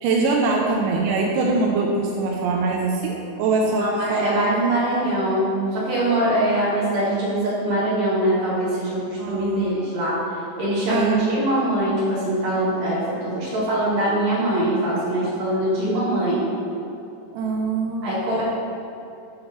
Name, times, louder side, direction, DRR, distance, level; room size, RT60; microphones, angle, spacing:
voice 1, 0.0-4.4 9.2-9.7 10.9-11.3 17.3-18.2, right 3 dB, 85° right, -1 dB, 1.8 m, -23 dB
voice 2, 3.8-10.2 10.6-16.4 18.0-18.4, right 1 dB, 55° right, -7 dB, 2.4 m, -23 dB
6.4 x 2.9 x 5.3 m, 2.7 s
omnidirectional pair, 4.2 m